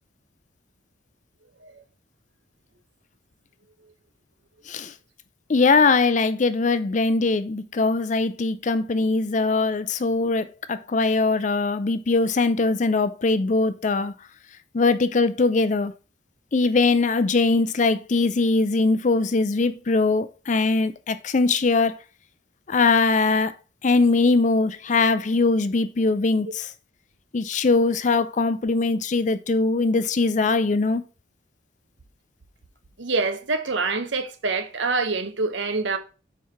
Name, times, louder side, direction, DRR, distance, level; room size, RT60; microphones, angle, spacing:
voice 1, 5.5-14.1 14.7-15.9 16.5-22.0 22.7-23.5 23.8-26.7 27.3-31.0, left 3 dB, 40° left, 0.5 m, -21 dB
voice 2, 33.0-36.0, right 3 dB, 75° right, 1.0 m, -25 dB
4.8 x 4.6 x 5.7 m
head